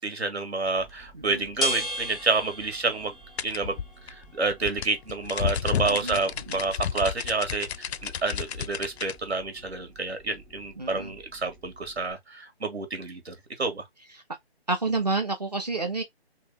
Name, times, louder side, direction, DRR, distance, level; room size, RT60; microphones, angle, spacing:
voice 1, 0.0-3.1 3.4-3.8 4.1-13.8, right 3 dB, 85° right, 1.9 m, -29 dB
sound 1, 0.6-12.1, equal, ahead, 0.5 m, -39 dB
sound 2, 3.4-9.2, left 8 dB, 85° left, 0.5 m, -31 dB
voice 2, 5.8-6.2 6.5-6.6 10.8-11.1 14.7-16.0, right 3 dB, 40° right, 0.8 m, -29 dB
3.3 x 2.8 x 3.4 m
hypercardioid pair, 180°, 32 cm